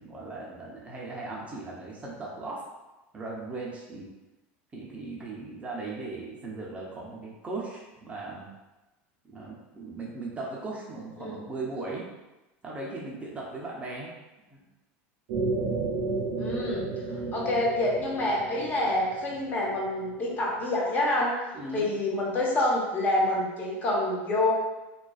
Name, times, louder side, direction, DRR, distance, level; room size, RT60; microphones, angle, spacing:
voice 1, 0.0-2.6 3.1-4.1 4.7-8.5 9.2-12.1 12.6-14.1 14.5-14.6 17.1-17.4 21.5-21.9, right 3 dB, 20° right, -4 dB, 0.4 m, -38 dB
sound 1, 15.3-20.4, right 3 dB, 75° right, 0.5 m, -33 dB
voice 2, 16.4-16.9 17.3-21.3 21.7-24.5, left 1 dB, 30° left, -3 dB, 0.6 m, -27 dB
2.4 x 2.2 x 2.3 m, 1.0 s
supercardioid pair, 125°, 6 cm